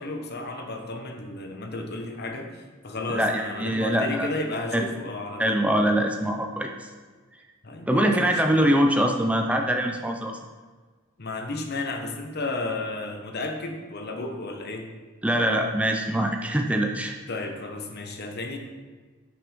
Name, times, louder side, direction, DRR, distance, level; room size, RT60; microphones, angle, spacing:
voice 1, 0.0-5.6 7.6-8.7 11.2-14.9 17.3-18.6, left 2 dB, 50° left, 4 dB, 1.1 m, -33 dB
voice 2, 3.1-4.3 4.7-4.9 5.4-6.9 7.9-10.4 15.2-17.2, right 1 dB, 5° right, 3 dB, 0.5 m, -23 dB
9.5 x 5.9 x 5.2 m, 1.4 s
head